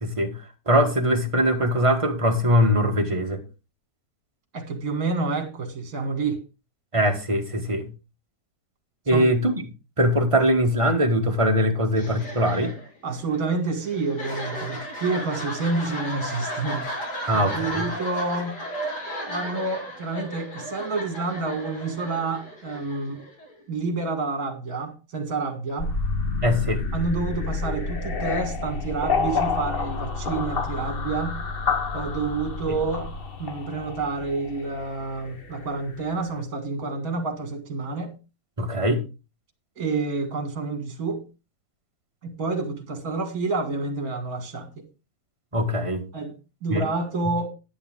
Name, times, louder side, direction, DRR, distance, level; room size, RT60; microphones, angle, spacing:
voice 1, 0.0-0.3 0.7-3.4 6.9-7.9 9.1-9.6 10.0-12.7 17.3-17.9 26.4-26.8 38.6-39.0 45.5-46.0 46.7-46.8, equal, 20° right, 1.5 m, -21 dB
voice 2, 4.5-6.4 9.1-9.3 13.0-16.9 17.3-18.6 19.2-23.2 23.7-26.0 26.9-31.4 31.9-33.1 33.4-38.1 39.8-41.2 42.2-44.9 46.1-46.3 46.6-47.5, right 3 dB, 55° right, 2.4 m, -29 dB
sound 1, 11.9-23.6, equal, 65° left, 3.6 m, -35 dB
sound 2, 25.8-35.8, left 4 dB, 40° left, 1.1 m, -29 dB
10.5 x 9.8 x 3.6 m
omnidirectional pair, 1.9 m